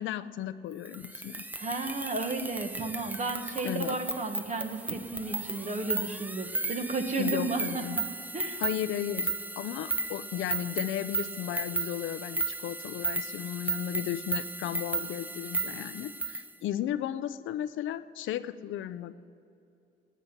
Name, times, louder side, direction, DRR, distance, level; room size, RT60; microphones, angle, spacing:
voice 1, 0.0-1.4 3.6-4.0 7.2-8.0 8.6-19.1, left 11 dB, 80° left, 14 dB, 0.6 m, -35 dB
sound 1, 0.9-16.5, right 3 dB, 10° right, 0.6 m, -35 dB
voice 2, 1.6-8.0 8.3-8.6, right 3 dB, 35° right, 6 dB, 1.5 m, -33 dB
10.0 x 9.0 x 9.8 m, 2.7 s
cardioid pair, 90°, 20 cm